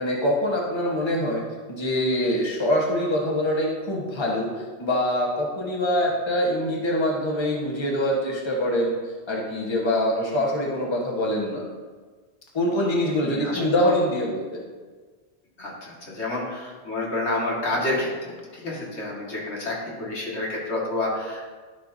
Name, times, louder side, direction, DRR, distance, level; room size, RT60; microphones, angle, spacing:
voice 1, 0.0-1.4 1.7-9.0 9.3-11.6 12.5-14.7, left 1 dB, 25° left, -2 dB, 1.2 m, -24 dB
voice 2, 13.2-13.6 15.6-21.5, left 2 dB, 80° left, -5 dB, 2.2 m, -29 dB
13.0 x 5.6 x 2.7 m, 1.4 s
omnidirectional pair, 1.1 m